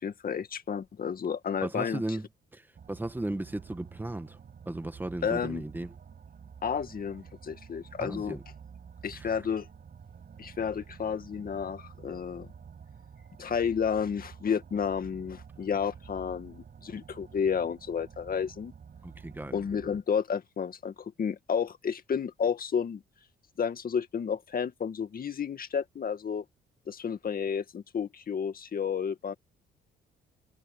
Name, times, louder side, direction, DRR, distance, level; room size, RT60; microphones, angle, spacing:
voice 1, 0.0-2.0 5.2-5.6 6.6-8.4 9.0-9.7 10.4-12.5 13.4-18.7 19.5-23.0 23.6-26.4 26.9-29.3, left 7 dB, 45° left, 2.1 m, -31 dB
voice 2, 1.6-2.3 2.5-4.4 4.7-5.9 8.0-8.4 9.2-9.4 19.0-19.5, right 1 dB, 10° right, 1.6 m, -36 dB
sound 1, 2.7-20.0, right 7 dB, 50° right, 7.4 m, -49 dB
cardioid pair, 90°, 20 cm